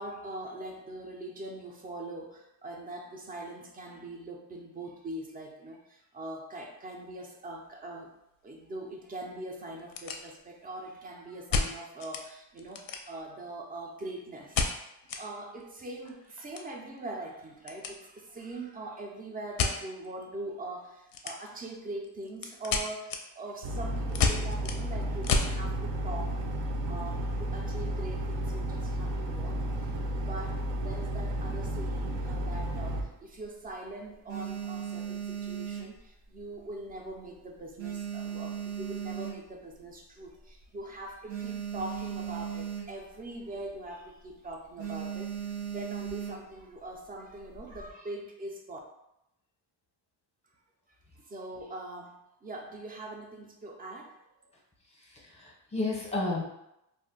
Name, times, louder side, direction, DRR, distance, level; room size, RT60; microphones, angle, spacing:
voice 1, 0.0-8.1 8.4-14.7 15.0-26.4 26.9-29.9 30.3-48.8 51.2-54.2, right 2 dB, 20° right, 1 dB, 0.4 m, -42 dB
sound 1, 7.5-7.7 8.0-8.1 8.7-8.8 9.0-9.1 9.7-10.7 11.5-12.3 12.6-13.4 14.5-15.2 15.6-15.7 16.0-18.0 18.2-18.5 19.6-19.8 21.1-21.7 22.0-25.6, left 5 dB, 50° left, 0.4 m, -31 dB
sound 2, 23.6-33.0, right 1 dB, 70° right, 0.6 m, -32 dB
sound 3, 33.0-33.7 34.1-36.6 36.9-37.3 37.5-39.8 40.3-40.4 40.5-40.7 41.0-43.2 43.5-43.7 44.1-44.3 44.8-46.6 47.3-47.9, right 8 dB, 85° right, 1.0 m, -37 dB
voice 2, 54.9-56.4, left 2 dB, 15° left, -2 dB, 0.7 m, -32 dB
2.5 x 2.1 x 3.8 m, 0.85 s
cardioid pair, 135°, 46 cm